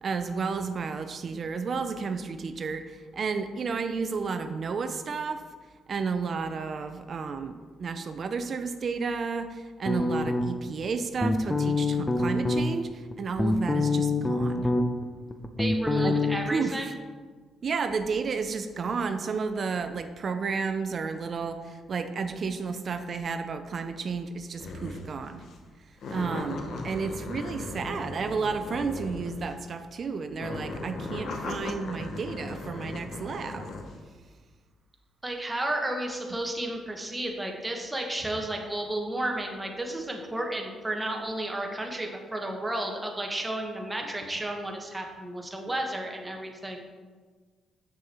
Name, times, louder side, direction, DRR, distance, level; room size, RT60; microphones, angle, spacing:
voice 1, 0.0-5.4 5.9-14.7 16.0-16.2 16.5-16.7 17.6-25.4 26.1-33.7, right 5 dB, 50° right, 8 dB, 0.5 m, -32 dB
sound 1, 9.9-10.7 11.2-12.6 13.1-15.1 15.3-16.4, left 2 dB, 15° left, 0.6 m, -25 dB
voice 2, 15.6-16.9 35.2-46.8, right 1 dB, 10° right, 1 dB, 1.3 m, -32 dB
sound 2, 24.6-25.1 25.4-25.6 26.0-29.7 30.3-33.9, left 2 dB, 65° left, 1.0 m, -37 dB
6.9 x 6.3 x 4.4 m, 1.5 s
cardioid pair, 90°, 0 cm